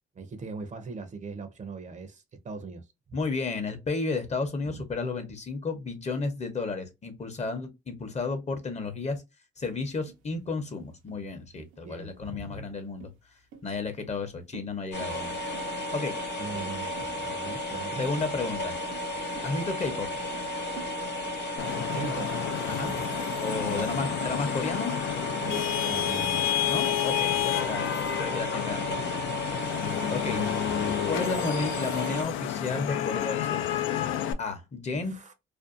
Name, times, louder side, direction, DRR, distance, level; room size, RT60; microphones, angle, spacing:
voice 1, 0.1-3.2 4.7-4.8 11.8-12.7 16.4-18.1 21.8-22.4 22.8-23.0 23.7-24.1 25.4-26.5 30.3-31.0 34.9-35.3, right 4 dB, 35° right, 0.5 m, -40 dB
voice 2, 3.1-9.2 9.6-13.1 13.6-15.3 15.9-16.1 18.0-18.8 19.4-20.1 22.7-23.0 23.4-25.0 26.6-27.9 28.2-29.2 30.1-30.5 31.1-33.6 34.4-35.1, left 3 dB, 35° left, 0.7 m, -32 dB
sound 1, 10.1-20.9, right 8 dB, 85° right, 0.6 m, -50 dB
sound 2, 14.9-32.2, equal, 60° left, 0.9 m, -34 dB
Vehicle horn car horn honking / Traffic noise roadway noise, 21.6-34.3, left 11 dB, 90° left, 0.4 m, -30 dB
2.5 x 2.2 x 2.4 m
cardioid pair, 90°, 20 cm